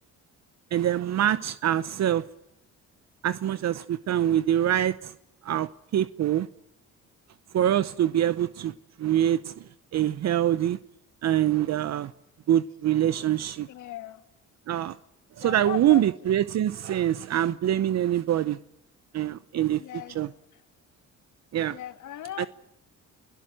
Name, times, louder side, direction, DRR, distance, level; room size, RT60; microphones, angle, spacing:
voice 1, 0.7-2.2 3.2-5.1 5.4-6.5 7.5-8.7 9.0-9.6 9.9-10.8 11.2-12.1 12.5-13.7 14.7-15.0 15.4-18.6 19.1-19.8 20.1-20.3 21.5-21.8 22.4-22.5, right 11 dB, 60° right, 0.8 m, -24 dB
voice 2, 13.7-14.2 15.4-16.3 17.0-17.2 19.6-20.2 21.7-22.5, left 12 dB, 80° left, 1.9 m, -39 dB
29.5 x 17.0 x 7.6 m
cardioid pair, 90°, 30 cm